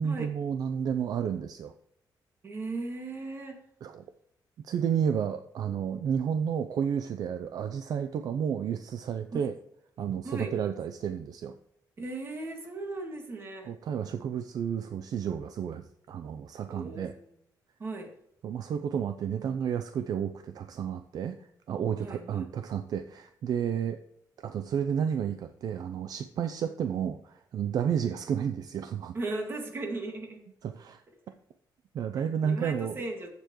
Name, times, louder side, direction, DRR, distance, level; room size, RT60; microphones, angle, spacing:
voice 1, 0.0-1.7 3.8-4.0 4.6-9.5 10.0-11.6 13.7-17.1 18.4-21.4 21.7-24.0 24.4-29.2 30.6-31.0 31.9-33.0, right 8 dB, 60° right, 8 dB, 0.5 m, -31 dB
voice 2, 2.4-3.6 9.3-9.5 10.2-10.5 12.0-13.7 16.7-17.3 17.8-18.1 22.0-22.5 28.0-28.1 29.1-30.4 32.2-33.3, right 2 dB, 30° right, 2 dB, 2.0 m, -37 dB
14.5 x 6.9 x 3.1 m, 0.74 s
wide cardioid pair, 180°, 7 cm